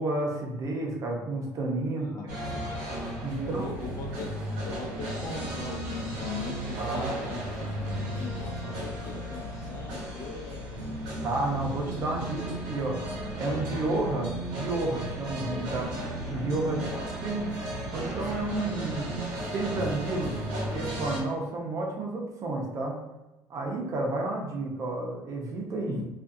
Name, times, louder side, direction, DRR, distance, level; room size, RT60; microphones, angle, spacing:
voice 1, 0.0-2.1 3.2-3.7 6.8-7.2 11.2-15.9 16.3-16.8 17.2-17.4 17.9-19.1 19.5-20.4 20.7-23.0 23.5-26.0, right 2 dB, 45° right, 0 dB, 0.7 m, -31 dB
voice 2, 2.0-2.8 3.4-4.3 4.6-7.4 8.2-11.0 16.6-17.1 25.9-26.1, left 4 dB, 45° left, -1 dB, 0.8 m, -40 dB
sound 1, 2.3-21.2, right 1 dB, 80° right, 0.8 m, -34 dB
2.5 x 2.4 x 2.6 m, 0.99 s
supercardioid pair, 100°, 8 cm